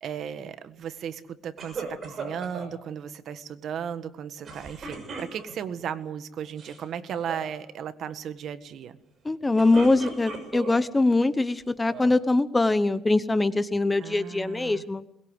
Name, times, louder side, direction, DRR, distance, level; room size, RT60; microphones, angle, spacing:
voice 1, 0.0-9.0 14.0-14.8, right 8 dB, 55° right, 12 dB, 1.5 m, -35 dB
sound 1, 1.6-2.7 4.4-5.7 6.4-6.8 7.1-7.5 9.3-10.9 11.4-12.2, right 4 dB, 35° right, 6.3 m, -38 dB
voice 2, 9.2-15.0, left 2 dB, 15° left, 14 dB, 0.9 m, -23 dB
22.0 x 21.0 x 7.9 m, 0.78 s
cardioid pair, 140°, 0 cm